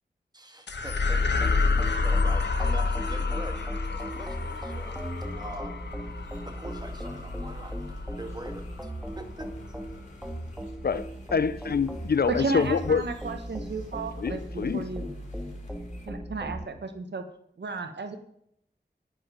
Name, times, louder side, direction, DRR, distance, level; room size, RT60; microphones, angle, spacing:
voice 1, 0.3-1.2 1.5-5.0 5.3-5.8 6.5-9.5, right 1 dB, 25° right, 6 dB, 1.9 m, -43 dB
sound 1, 0.7-9.3, left 4 dB, 80° left, 1.2 m, -29 dB
sound 2, 1.4-16.6, equal, 5° right, 1.7 m, -38 dB
sound 3, 3.9-16.1, left 1 dB, 40° left, 4.7 m, -53 dB
voice 2, 10.8-13.0 14.2-14.8, left 6 dB, 60° left, 17 dB, 0.5 m, -26 dB
voice 3, 12.3-15.1 16.1-17.2 17.6-18.2, right 3 dB, 80° right, 7 dB, 1.4 m, -33 dB
9.9 x 9.8 x 5.1 m, 0.72 s
wide cardioid pair, 80°, 18 cm